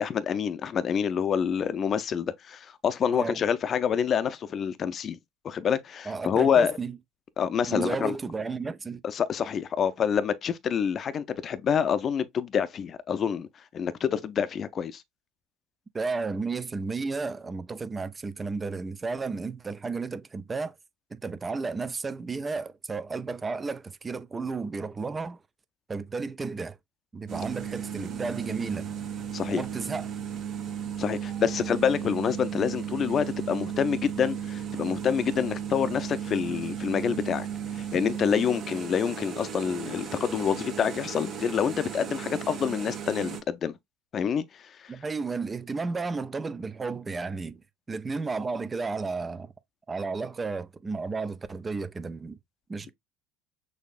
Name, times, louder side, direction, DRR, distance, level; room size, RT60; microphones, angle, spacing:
voice 1, 0.0-5.2 5.4-6.8 7.4-8.2 9.0-13.5 13.7-15.0 29.3-29.6 31.0-37.5 37.8-43.8 44.1-44.9, left 7 dB, 40° left, 0.6 m, -27 dB
voice 2, 3.1-3.4 6.1-7.0 7.7-9.0 15.9-20.7 21.1-25.4 25.9-26.8 27.1-28.9 29.5-30.1 44.9-47.6 47.9-49.5 49.9-52.4 52.7-52.9, right 4 dB, 20° right, 0.5 m, -33 dB
sound 1, 27.3-43.4, right 8 dB, 45° right, 1.3 m, -35 dB
6.4 x 2.6 x 2.4 m
hypercardioid pair, 70°, 0 cm